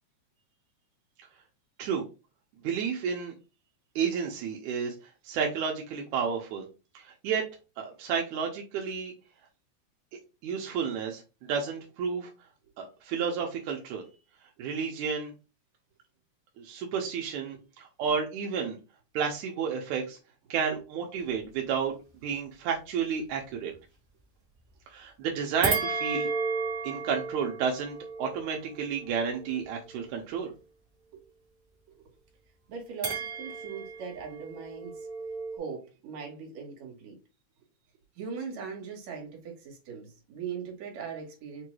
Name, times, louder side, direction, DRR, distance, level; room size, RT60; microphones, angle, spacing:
voice 1, 2.6-3.3 4.0-4.9 5.2-6.7 6.9-7.4 7.8-9.1 10.4-12.3 12.8-14.0 14.6-15.3 16.6-18.8 19.1-20.2 20.5-22.0 22.2-23.7 24.9-26.3 26.8-30.5, right 6 dB, 85° right, 0 dB, 2.2 m, -31 dB
sound 1, 25.6-30.1 33.0-35.6, right 4 dB, 50° right, 1.3 m, -34 dB
voice 2, 32.7-35.1 35.5-37.2 38.2-41.6, right 6 dB, 70° right, 0 dB, 2.6 m, -40 dB
6.6 x 2.3 x 3.1 m, 0.30 s
omnidirectional pair, 3.3 m